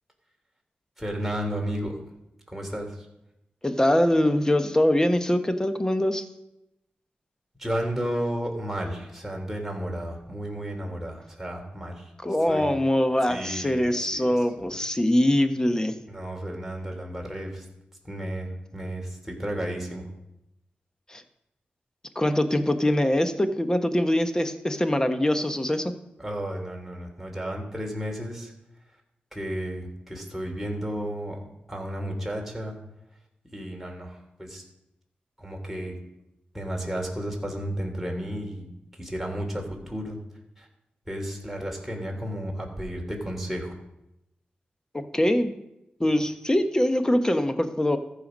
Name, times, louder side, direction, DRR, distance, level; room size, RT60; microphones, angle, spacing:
voice 1, 1.0-1.9 2.5-3.1 7.6-12.1 12.5-12.7 13.3-14.8 16.1-17.7 18.0-20.1 26.2-28.5 29.3-31.4 31.7-32.8 33.5-34.6 35.4-35.9 36.5-40.2 40.6-40.7 41.1-43.8, equal, 5° right, 0 dB, 3.6 m, -33 dB
voice 2, 3.6-6.2 12.2-16.0 21.1-21.2 22.1-25.9 44.9-45.5 46.0-48.0, left 1 dB, 15° left, 8 dB, 1.2 m, -23 dB
14.0 x 5.8 x 5.4 m, 0.87 s
cardioid pair, 50°, 4 cm